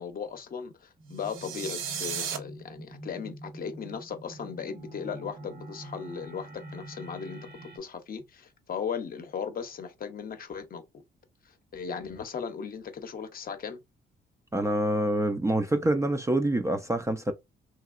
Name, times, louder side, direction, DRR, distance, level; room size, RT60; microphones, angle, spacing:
voice 1, 0.0-10.8 11.5-13.8, left 6 dB, 45° left, 0.7 m, -37 dB
sound 1, 1.0-7.8, right 1 dB, 50° right, 0.9 m, -45 dB
sound 2, 1.2-2.4, right 7 dB, 85° right, 0.6 m, -34 dB
voice 2, 14.5-17.3, right 1 dB, 15° right, 0.4 m, -26 dB
2.9 x 2.7 x 2.4 m
cardioid pair, 90°, 20 cm